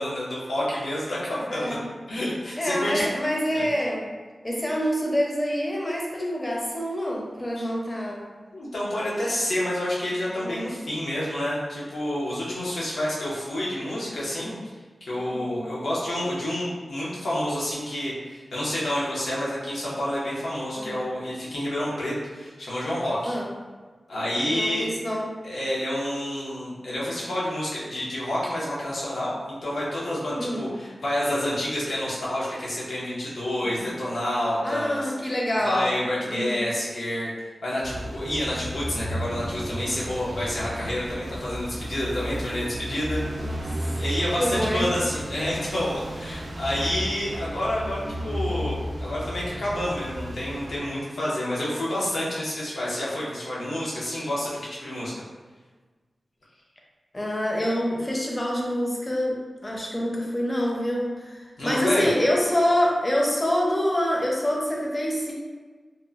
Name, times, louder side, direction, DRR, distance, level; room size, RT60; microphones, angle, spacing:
voice 1, 0.0-1.8 2.1-3.0 3.5-3.6 7.6-7.7 8.5-14.5 15.0-23.4 24.1-24.9 25.4-35.4 35.6-37.3 37.6-43.6 44.0-55.1 61.6-62.1, left 1 dB, 85° left, -7 dB, 0.7 m, -29 dB
voice 2, 1.5-1.9 2.6-4.2 4.4-8.2 10.4-10.8 15.3-15.7 20.8-21.0 23.2-23.5 24.5-25.3 30.4-30.7 33.6-33.9 34.6-36.0 36.3-36.7 43.4-43.6 44.4-44.9 57.1-65.3, equal, 25° left, -2 dB, 0.5 m, -26 dB
sound 1, 37.8-50.8, equal, 55° right, 0.3 m, -33 dB
2.8 x 2.1 x 2.4 m, 1.4 s
wide cardioid pair, 80°, 0 cm